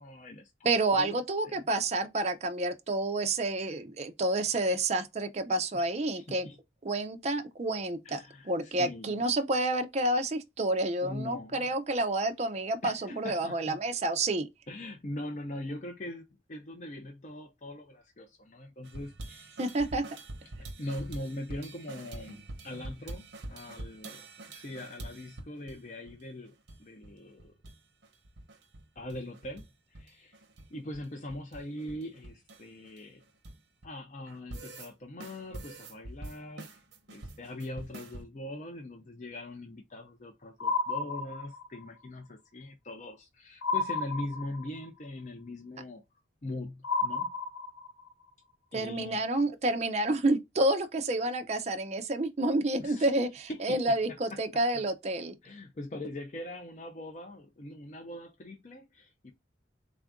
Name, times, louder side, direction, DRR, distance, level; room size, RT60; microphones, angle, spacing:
voice 1, 0.0-0.5 1.0-1.6 3.6-3.7 5.7-6.6 8.0-9.1 11.0-11.7 12.8-13.8 14.7-19.6 20.8-22.4 22.6-24.2 24.5-26.5 26.8-27.5 29.0-30.4 30.7-33.2 33.8-36.7 37.1-46.0 46.4-47.3 48.7-49.2 52.8-53.1 53.5-54.4 54.7-54.8 55.4-59.3, left 1 dB, 40° left, 0.5 m, -42 dB
voice 2, 0.6-6.5 6.8-8.2 8.5-14.5 19.6-20.0 48.7-55.4, right 2 dB, 35° right, 0.5 m, -29 dB
sound 1, 18.8-25.8 26.1-26.2 26.4-27.1 27.4-27.8 28.0-29.7 29.9-33.9 34.3-34.9 35.2-38.2, right 1 dB, 65° right, 0.8 m, -45 dB
sound 2, 40.6-41.8 43.6-44.8 46.8-48.1, left 4 dB, 85° left, 1.4 m, -32 dB
3.6 x 2.5 x 3.5 m
head